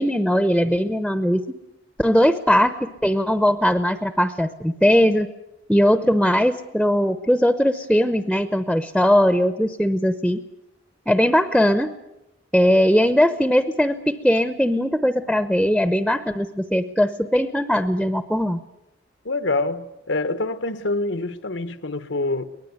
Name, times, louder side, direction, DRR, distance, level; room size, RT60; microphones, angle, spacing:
voice 1, 0.0-1.4 2.0-5.3 5.7-10.4 11.1-11.9 12.5-18.6, equal, ahead, 0.8 m, -19 dB
voice 2, 19.2-22.5, left 2 dB, 90° left, 1.4 m, -26 dB
23.5 x 19.5 x 9.5 m
head